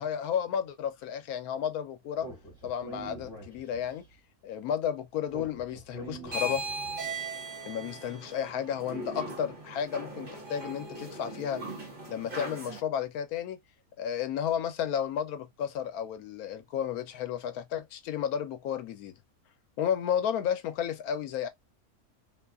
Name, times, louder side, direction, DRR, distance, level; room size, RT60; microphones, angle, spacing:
voice 1, 0.0-2.3 2.6-4.0 4.4-6.6 7.6-11.7 12.1-13.6 14.0-19.1 19.8-21.5, left 8 dB, 85° left, 1.1 m, -32 dB
Speech, 2.2-4.0 5.3-7.0, right 2 dB, 25° left, 1.4 m, -45 dB
sound 1, 6.2-12.8, right 2 dB, 40° right, 1.1 m, -39 dB
2.8 x 2.3 x 2.3 m
omnidirectional pair, 1.5 m